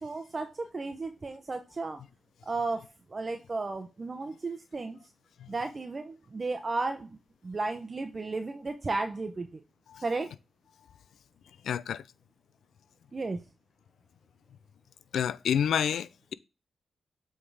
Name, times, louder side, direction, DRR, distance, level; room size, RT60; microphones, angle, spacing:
voice 1, 0.0-2.0 2.4-5.0 5.5-7.2 7.4-9.6 10.0-10.3 13.1-13.4, right 3 dB, 40° right, 0.8 m, -34 dB
voice 2, 11.6-12.0 15.1-16.3, left 8 dB, 85° left, 0.4 m, -29 dB
7.8 x 3.6 x 4.9 m
cardioid pair, 70°, 0 cm